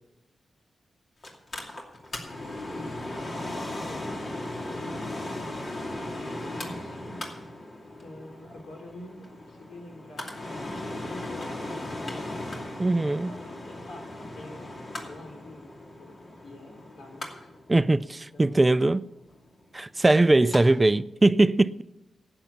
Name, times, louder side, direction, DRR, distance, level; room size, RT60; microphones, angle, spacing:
Mechanical fan, 1.2-20.6 20.9-21.0, left 1 dB, 50° left, 2.6 m, -37 dB
voice 1, 3.1-4.0 4.7-5.1 6.1-7.2 8.0-10.4 10.7-12.5 13.0-14.7 15.0-17.5 18.3-19.0 20.1-20.4, left 1 dB, 85° left, 2.9 m, -46 dB
voice 2, 12.8-13.3 17.7-19.0 19.7-21.8, right 2 dB, 25° right, 0.3 m, -21 dB
11.5 x 8.8 x 7.0 m
cardioid pair, 65°, 0 cm